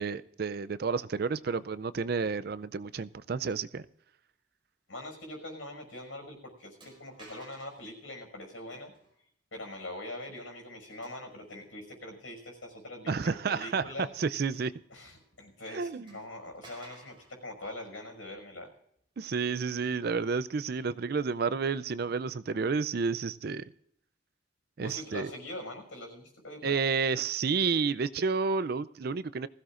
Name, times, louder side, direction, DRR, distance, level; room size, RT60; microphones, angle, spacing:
voice 1, 0.0-3.8 13.1-13.8 14.2-14.7 15.7-16.1 19.2-23.7 24.8-25.3 26.6-29.5, right 5 dB, 50° right, 0.4 m, -30 dB
voice 2, 4.9-8.9 9.5-14.1 14.9-18.7 24.8-26.8, left 1 dB, 80° left, 5.8 m, -43 dB
sound 1, 5.9-6.0 6.8-7.9 8.7-9.2 11.0-11.8 12.3-12.4 14.5-15.3 15.6-15.7 16.1-17.4, right 2 dB, 25° right, 5.3 m, -55 dB
20.0 x 16.0 x 2.5 m
head